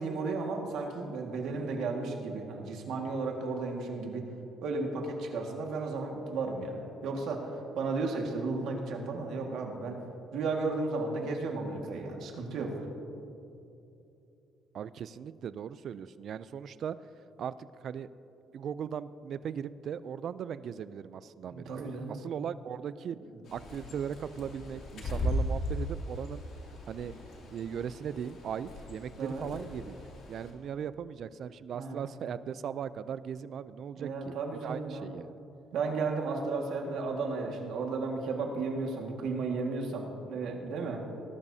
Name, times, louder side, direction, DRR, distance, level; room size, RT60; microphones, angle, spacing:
voice 1, 0.0-4.2 4.6-7.4 7.7-10.0 10.3-12.7 21.5-22.1 29.2-29.4 31.7-32.0 34.0-35.1 35.7-41.0, right 3 dB, 75° right, 1 dB, 1.8 m, -34 dB
voice 2, 14.7-17.0 17.4-18.1 18.5-23.2 23.5-26.4 26.9-27.1 27.5-35.4, right 8 dB, 55° right, 15 dB, 0.4 m, -38 dB
Bird, 23.4-30.5, equal, 65° left, 2.6 m, -38 dB
19.0 x 12.0 x 2.8 m, 2.8 s
cardioid pair, 120°, 0 cm